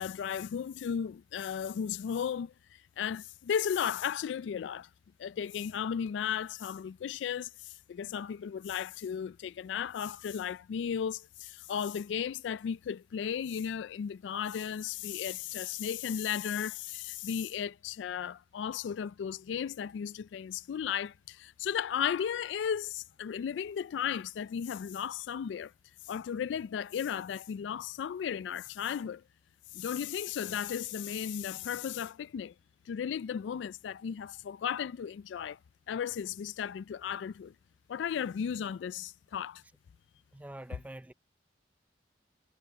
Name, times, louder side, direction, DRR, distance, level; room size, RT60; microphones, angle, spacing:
voice 1, 0.0-4.9 5.2-25.7 26.0-29.2 29.7-32.5 32.9-35.6 35.9-37.5 37.9-39.6, left 8 dB, 80° left, 0.3 m, -35 dB
voice 2, 40.3-41.1, right 1 dB, 10° right, 0.4 m, -45 dB
head